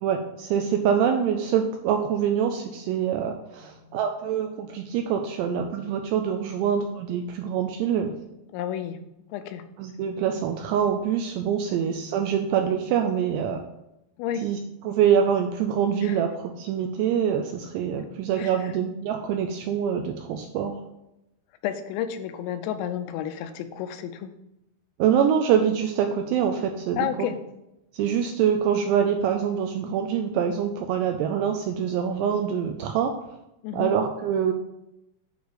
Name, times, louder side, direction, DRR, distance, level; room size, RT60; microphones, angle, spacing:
voice 1, 0.0-8.1 9.8-13.6 14.4-14.6 14.8-20.8 25.0-27.3 27.9-33.1 33.7-34.5, right 8 dB, 85° right, 5 dB, 2.5 m, -25 dB
voice 2, 3.6-4.0 8.5-9.0 9.3-9.7 14.2-14.5 16.0-16.2 18.4-18.7 21.6-24.3 27.0-27.4 33.6-33.9, left 10 dB, 85° left, 8 dB, 2.8 m, -31 dB
9.1 x 3.2 x 6.5 m, 0.87 s
omnidirectional pair, 5.4 m